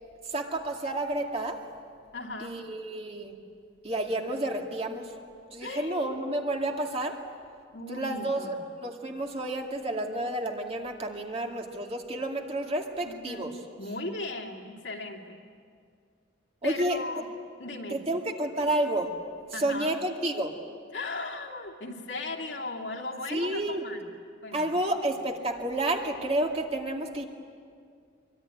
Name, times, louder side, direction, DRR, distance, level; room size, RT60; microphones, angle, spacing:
voice 1, 0.3-1.6 2.4-3.4 3.8-5.2 5.5-7.2 7.9-13.6 16.6-17.0 17.9-19.2 19.5-20.5 23.3-23.8 24.5-27.2, right 1 dB, 30° right, 2 dB, 2.2 m, -30 dB
voice 2, 2.1-2.5 5.6-6.2 7.7-8.5 13.0-13.5 13.8-15.4 16.6-17.3 17.6-18.0 19.5-20.0 20.9-24.1 24.4-24.6, left 2 dB, 65° left, 1 dB, 2.9 m, -37 dB
24.5 x 24.0 x 10.0 m, 2.2 s
head